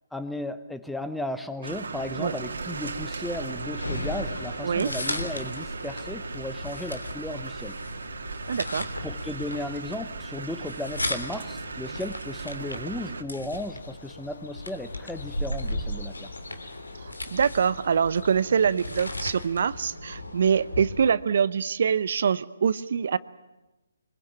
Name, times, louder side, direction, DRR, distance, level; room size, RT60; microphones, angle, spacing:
voice 1, 0.1-7.7 9.0-16.3, left 1 dB, ahead, 12 dB, 0.9 m, -35 dB
sound 1, 1.6-13.2, right 4 dB, 70° right, 2.5 m, -37 dB
sound 2, 3.2-21.1, left 1 dB, 90° left, 3.5 m, -36 dB
voice 2, 8.5-8.9 17.0-23.2, right 7 dB, 55° right, 16 dB, 0.8 m, -24 dB
sound 3, 13.5-18.7, left 3 dB, 65° left, 3.0 m, -48 dB
23.5 x 21.5 x 8.7 m, 1.1 s
figure-of-eight pair, 140°, 0 cm